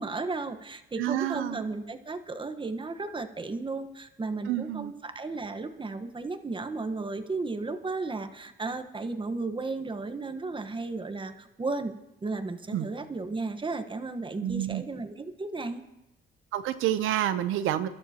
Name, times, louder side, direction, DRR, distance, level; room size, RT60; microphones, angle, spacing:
voice 1, 0.0-11.9 12.2-15.8, right 3 dB, 25° right, 8 dB, 1.2 m, -34 dB
voice 2, 1.0-1.7 4.5-4.9 12.7-12.9 14.4-14.8 16.5-17.9, right 12 dB, 90° right, 12 dB, 0.7 m, -28 dB
24.0 x 12.5 x 2.9 m, 0.91 s
cardioid pair, 90°, 20 cm